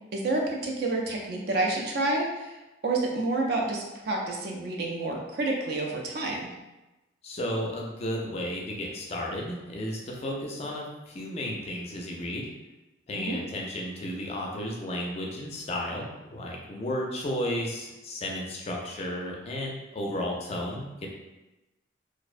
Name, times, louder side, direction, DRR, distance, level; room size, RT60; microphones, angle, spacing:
voice 1, 0.1-2.6 2.8-6.5 13.1-13.4, right 2 dB, 55° right, 0 dB, 0.4 m, -29 dB
voice 2, 7.2-12.5 13.1-21.1, left 1 dB, 35° left, -1 dB, 0.3 m, -33 dB
2.5 x 2.1 x 2.4 m, 1.0 s
head